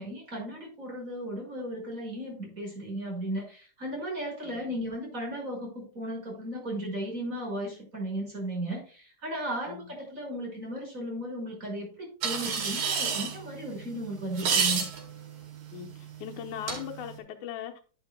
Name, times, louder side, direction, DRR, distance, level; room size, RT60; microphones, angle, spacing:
voice 1, 0.0-14.8, right 1 dB, 25° right, 5.9 m, -35 dB
voice 2, 4.5-4.8 9.7-9.9 15.7-15.9 16.2-17.8, left 10 dB, 85° left, 2.4 m, -39 dB
sound 1, 12.2-17.2, right 6 dB, 90° right, 3.8 m, -32 dB
11.0 x 10.5 x 2.2 m
omnidirectional pair, 3.4 m